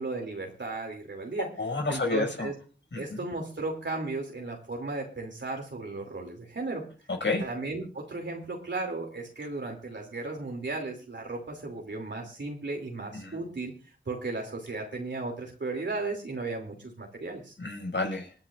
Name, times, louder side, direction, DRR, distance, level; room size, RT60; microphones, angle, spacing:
voice 1, 0.0-1.5 1.9-2.5 3.0-6.8 7.4-13.7 14.1-17.5, right 3 dB, 70° right, 1 dB, 2.7 m, -35 dB
voice 2, 1.4-2.5 2.9-3.2 7.2-7.4 13.1-13.4 17.6-18.3, left 3 dB, 75° left, 2 dB, 6.1 m, -30 dB
27.0 x 10.5 x 2.5 m, 0.35 s
wide cardioid pair, 65°, 19 cm